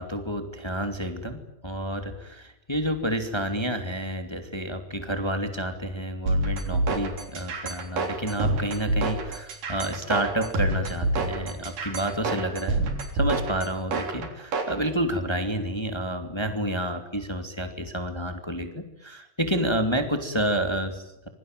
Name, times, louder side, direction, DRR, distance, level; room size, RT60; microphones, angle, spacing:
voice 1, 0.0-12.8 13.1-21.3, right 1 dB, 10° left, 7 dB, 2.1 m, -29 dB
sound 1, 6.3-14.8, right 2 dB, 80° right, 5.1 m, -27 dB
26.5 x 23.0 x 9.2 m, 0.86 s
omnidirectional pair, 3.7 m